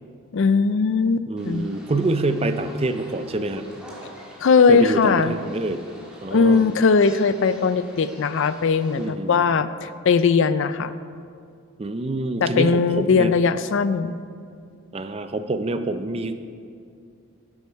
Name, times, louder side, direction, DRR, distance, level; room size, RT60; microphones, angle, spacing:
voice 1, 0.3-1.7 4.4-5.3 6.3-10.9 12.4-14.2, left 5 dB, 60° left, 13 dB, 0.4 m, -19 dB
voice 2, 1.3-3.7 4.7-5.8 6.2-6.6 9.0-9.4 11.8-13.3 14.9-16.4, right 2 dB, 25° right, 9 dB, 0.4 m, -26 dB
sound 1, 1.4-9.1, equal, 5° right, 1.6 m, -46 dB
11.0 x 8.3 x 4.6 m, 2.4 s
head